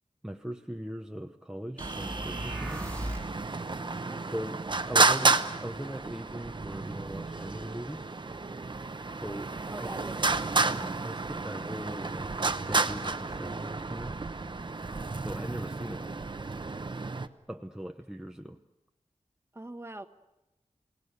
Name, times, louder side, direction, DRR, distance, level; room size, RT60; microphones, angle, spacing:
voice 1, 0.2-2.9 4.3-8.1 9.1-9.9 10.7-12.3 12.7-14.2 15.2-16.1 17.5-18.6, equal, 5° right, 4 dB, 0.8 m, -40 dB
sound 1, 1.8-3.4, right 1 dB, 10° left, 5.2 m, -37 dB
Traffic noise roadway noise, 1.8-17.3, right 3 dB, 40° right, 0.9 m, -31 dB
voice 2, 4.1-4.4 9.7-10.5 19.5-20.1, right 2 dB, 20° right, 8 dB, 1.3 m, -43 dB
30.0 x 18.0 x 6.9 m, 0.98 s
wide cardioid pair, 95°, 12 cm